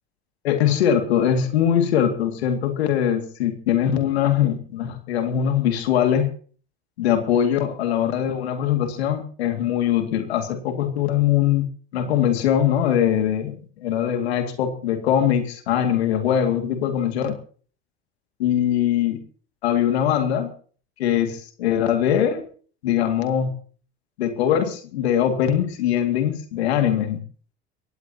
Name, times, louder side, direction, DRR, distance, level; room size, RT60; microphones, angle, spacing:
voice 1, 0.4-6.3 7.0-17.4 18.4-19.2 19.6-20.5 21.0-22.5 22.8-23.5 24.2-27.2, left 9 dB, 85° left, 6 dB, 2.4 m, -22 dB
24.0 x 17.5 x 2.9 m, 0.43 s
hypercardioid pair, 80°, 31 cm